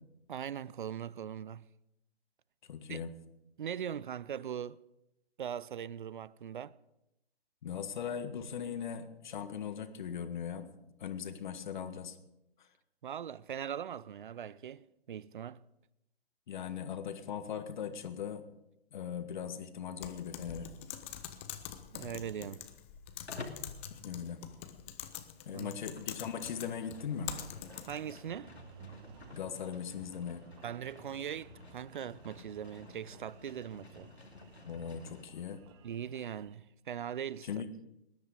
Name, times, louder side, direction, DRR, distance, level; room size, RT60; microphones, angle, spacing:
voice 1, 0.3-1.6 2.9-3.0 3.6-4.8 5.4-6.8 13.0-15.6 21.9-22.6 25.5-25.8 27.9-28.5 30.6-34.1 35.8-37.6, right 9 dB, 50° right, 0.6 m, -40 dB
voice 2, 2.7-3.1 7.6-10.7 11.0-12.2 16.5-18.4 18.9-20.7 23.9-24.5 25.4-27.3 29.3-30.6 34.6-35.6 37.4-37.7, left 7 dB, 45° left, 1.6 m, -39 dB
Typing, 20.0-28.1, left 11 dB, 10° left, 0.5 m, -45 dB
Livestock farm animals working animals, 23.3-23.7 25.4-35.3, left 3 dB, 85° left, 2.7 m, -51 dB
Engine, 27.6-36.6, right 7 dB, 25° right, 0.9 m, -58 dB
19.5 x 11.0 x 5.1 m
figure-of-eight pair, 140°, 32 cm